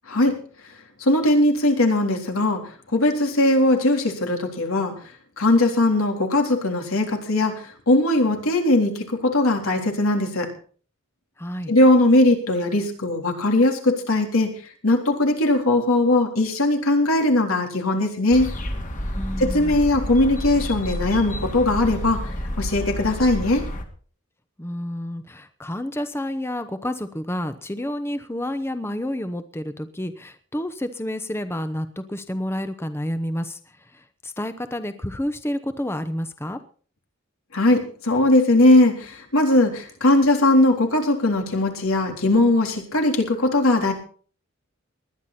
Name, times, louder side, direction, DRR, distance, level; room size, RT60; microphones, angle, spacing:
voice 1, 0.1-0.4 1.0-2.6 2.9-4.9 5.4-10.5 11.7-14.5 14.8-18.5 19.4-22.3 22.6-23.6 37.5-43.9, left 1 dB, 90° left, 2 dB, 3.8 m, -19 dB
voice 2, 11.4-11.7 19.1-19.8 24.6-33.6 33.9-36.6, left 1 dB, 10° left, 10 dB, 0.8 m, -29 dB
sound 1, 18.3-23.8, equal, 35° left, 2.1 m, -30 dB
20.0 x 11.5 x 4.3 m, 0.43 s
head